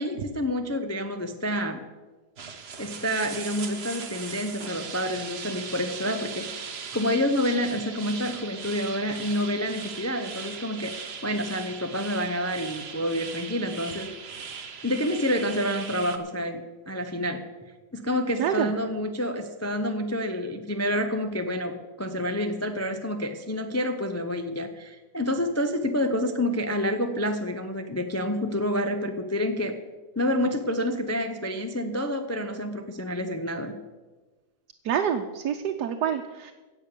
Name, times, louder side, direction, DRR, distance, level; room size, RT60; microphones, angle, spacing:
voice 1, 0.0-1.8 2.8-6.7 6.9-14.1 14.8-16.6 16.9-17.4 17.9-29.8 30.2-33.8, left 1 dB, 20° left, 6 dB, 0.4 m, -28 dB
sound 1, 2.4-16.2, right 6 dB, 45° right, 1.1 m, -39 dB
voice 2, 18.4-18.7 34.8-36.5, right 8 dB, 85° right, 4 dB, 1.4 m, -27 dB
16.5 x 7.2 x 6.8 m, 1.3 s
omnidirectional pair, 1.7 m